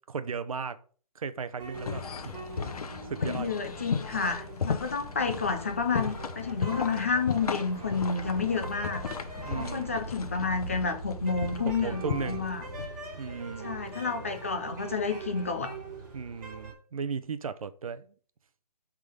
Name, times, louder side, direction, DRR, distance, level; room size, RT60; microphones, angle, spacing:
voice 1, 0.1-0.8 1.1-2.0 3.0-3.5 9.4-10.0 11.6-12.5 13.2-13.8 16.1-18.1, right 5 dB, 60° right, 0.7 m, -35 dB
sound 1, 1.6-16.7, right 3 dB, 30° right, 3.1 m, -42 dB
sound 2, 1.7-12.9, left 6 dB, 65° left, 0.9 m, -36 dB
voice 2, 3.2-9.0 9.5-12.6 13.6-15.8, left 5 dB, 20° left, 0.5 m, -30 dB
8.5 x 3.8 x 5.4 m
hypercardioid pair, 175°, 20 cm